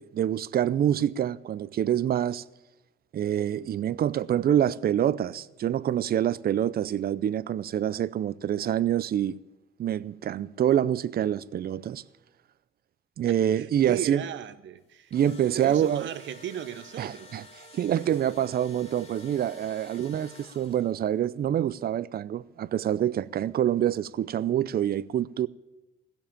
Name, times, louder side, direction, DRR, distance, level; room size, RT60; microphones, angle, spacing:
voice 1, 0.0-2.4 3.1-9.4 9.8-12.0 13.2-14.2 15.1-16.1 17.0-17.4 17.7-25.5, right 10 dB, 50° right, 0.5 m, -26 dB
voice 2, 13.5-15.1 15.5-17.4, right 10 dB, 70° right, 0.8 m, -36 dB
Engine / Drill, 14.9-21.1, left 2 dB, 30° left, 2.6 m, -50 dB
16.0 x 7.2 x 8.8 m
cardioid pair, 90°, 20 cm